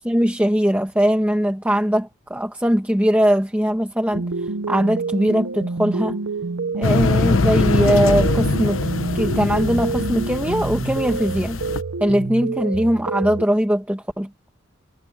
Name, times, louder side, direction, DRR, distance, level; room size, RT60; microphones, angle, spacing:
voice 1, 0.0-4.3 4.7-6.2 6.7-8.8 9.1-11.6 12.0-14.3, equal, 5° right, 1.1 m, -20 dB
sound 1, 4.1-13.4, right 3 dB, 75° right, 0.7 m, -28 dB
sound 2, 6.8-11.8, left 3 dB, 75° left, 1.0 m, -22 dB
head